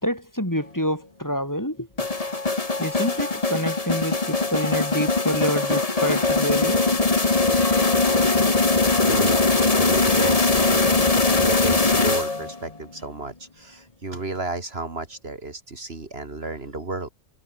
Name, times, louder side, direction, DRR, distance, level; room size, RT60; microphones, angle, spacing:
voice 1, 0.0-1.9 2.8-6.8, equal, 15° left, 4.5 m, -27 dB
sound 1, 2.0-12.6, left 3 dB, 30° left, 1.8 m, -21 dB
voice 2, 7.5-7.9 9.0-10.9 11.3-17.1, right 3 dB, 55° right, 2.9 m, -33 dB
omnidirectional pair, 1.2 m